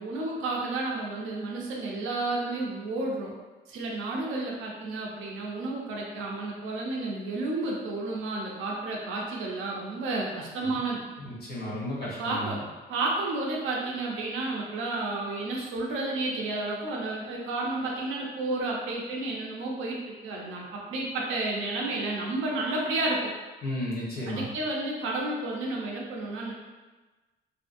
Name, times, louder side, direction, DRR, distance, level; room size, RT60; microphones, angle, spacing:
voice 1, 0.0-3.3 3.7-11.0 12.0-12.6 12.9-23.3 24.3-26.5, right 2 dB, 85° right, -2 dB, 0.6 m, -31 dB
voice 2, 11.2-12.5 23.6-24.5, left 1 dB, 50° left, -7 dB, 1.2 m, -34 dB
2.7 x 2.6 x 2.5 m, 1.2 s
cardioid pair, 90°, 20 cm